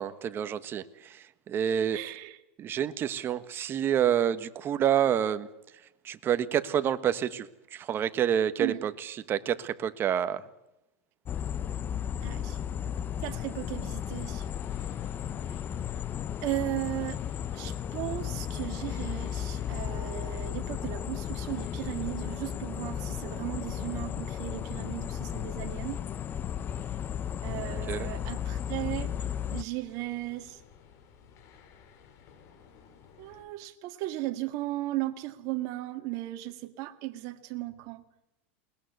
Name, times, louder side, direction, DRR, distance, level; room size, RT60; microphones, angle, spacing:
voice 1, 0.0-2.0 2.6-5.5 6.0-10.5 27.9-28.1, right 9 dB, 30° right, 13 dB, 1.4 m, -28 dB
voice 2, 1.9-2.4 8.6-8.8 12.2-12.6 13.2-14.5 15.5-15.6 16.4-17.2 17.5-26.0 27.4-30.6 33.2-38.0, right 17 dB, 55° right, 9 dB, 2.1 m, -36 dB
sound 1, 11.3-29.6, left 9 dB, 25° left, 0.8 m, -34 dB
sound 2, 14.0-33.4, left 7 dB, 45° left, 5.5 m, -55 dB
21.5 x 20.5 x 8.1 m, 0.89 s
supercardioid pair, 130°, 7 cm